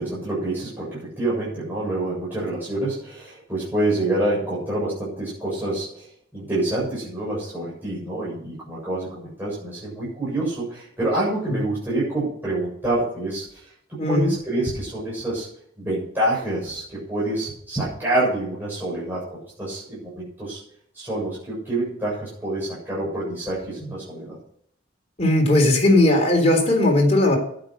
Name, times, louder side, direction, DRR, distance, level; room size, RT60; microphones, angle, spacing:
voice 1, 0.0-6.1 6.3-13.5 13.9-15.5 15.8-20.6 20.9-24.4, right 1 dB, 10° right, -8 dB, 7.4 m, -27 dB
voice 2, 14.0-14.3 25.2-27.4, left 1 dB, 35° left, 1 dB, 3.8 m, -18 dB
12.0 x 9.6 x 6.7 m, 0.66 s
head